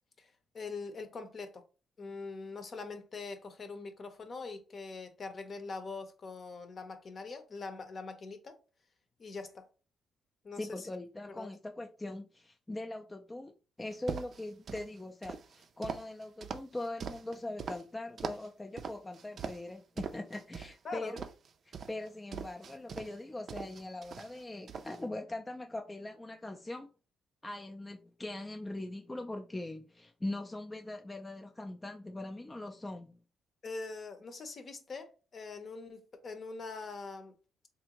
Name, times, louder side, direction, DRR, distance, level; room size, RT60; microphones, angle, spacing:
voice 1, 0.5-1.6 2.0-8.6 9.2-9.7 10.4-10.9 11.3-11.5 20.8-21.2 33.6-37.3, left 4 dB, 45° left, 0.7 m, -43 dB
voice 2, 10.6-13.5 13.8-21.2 21.7-26.9 27.4-33.2, left 2 dB, 15° left, 0.3 m, -41 dB
sound 1, 13.9-14.9 15.2-17.8 18.2-18.5 18.8-19.7 20.0-20.7 21.2-23.2 23.5-24.4 24.7-25.0, right 6 dB, 55° right, 0.4 m, -41 dB
3.3 x 2.5 x 2.9 m
cardioid pair, 90°, 0 cm